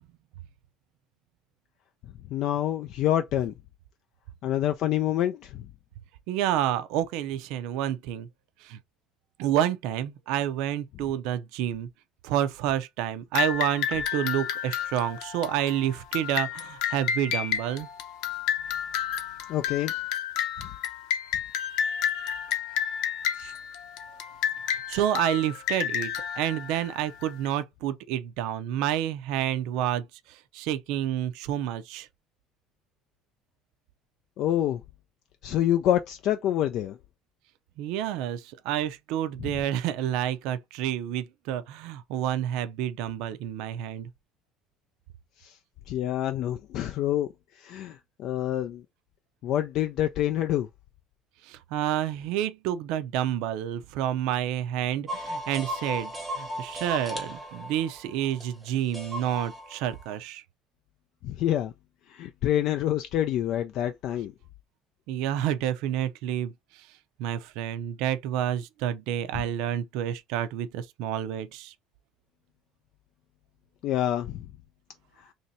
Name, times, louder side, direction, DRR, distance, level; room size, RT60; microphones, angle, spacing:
voice 1, 2.3-3.5 4.4-5.7 19.5-19.9 34.4-34.8 35.4-37.0 45.4-45.6 45.9-47.3 47.6-48.8 49.4-50.7 61.2-61.7 62.1-64.3 73.8-74.4 75.2-75.3, left 12 dB, 45° left, 0.3 m, -27 dB
voice 2, 6.3-8.3 8.6-8.8 9.4-11.9 12.2-17.9 21.6-22.5 23.4-23.5 24.7-32.1 37.8-44.1 51.4-60.4 65.1-66.9 67.2-71.7, right 11 dB, 65° right, 0.5 m, -29 dB
sound 1, 13.4-27.5, left 9 dB, 65° left, 0.7 m, -31 dB
sound 2, 55.1-60.2, equal, ahead, 0.9 m, -36 dB
3.1 x 2.7 x 4.0 m
cardioid pair, 180°, 0 cm